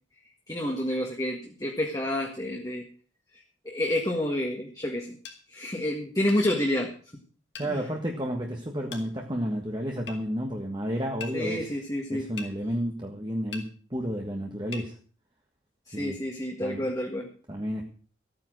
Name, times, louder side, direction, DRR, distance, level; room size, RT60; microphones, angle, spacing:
voice 1, 0.5-2.9 3.7-5.2 5.5-6.9 7.6-7.8 11.3-12.3 15.9-17.3, left 1 dB, 20° left, 0 dB, 1.8 m, -29 dB
sound 1, 5.2-5.4 6.3-6.5 7.5-7.7 8.9-9.1 10.1-10.2 11.2-11.4 12.4-12.5 13.5-13.7 14.7-14.9, left 5 dB, 65° left, 2.8 m, -40 dB
voice 2, 7.6-11.7 12.1-14.9 15.9-16.2 16.6-16.9 17.5-17.8, equal, 25° right, 1 dB, 1.5 m, -31 dB
14.5 x 9.2 x 6.4 m, 0.42 s
head